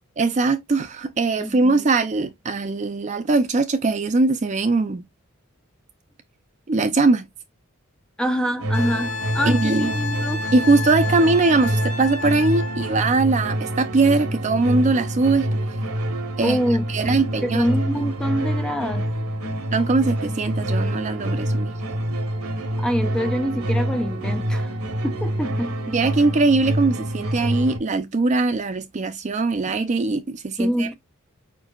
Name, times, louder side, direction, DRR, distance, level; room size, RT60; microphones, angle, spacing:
voice 1, 0.2-5.0 6.7-7.2 9.5-9.9 10.5-15.5 16.4-16.6 16.9-17.7 19.7-21.7 25.9-31.0, right 3 dB, 35° right, 0.4 m, -21 dB
voice 2, 1.4-1.8 8.2-10.4 16.4-16.9 17.4-19.1 22.8-24.7 25.0-25.7 30.6-30.9, equal, 5° left, 0.7 m, -25 dB
sound 1, 8.6-27.8, right 1 dB, 90° right, 1.0 m, -26 dB
Wind instrument woodwind instrument, 8.7-13.0 15.7-15.8, left 3 dB, 70° left, 0.9 m, -31 dB
5.0 x 4.5 x 2.3 m
head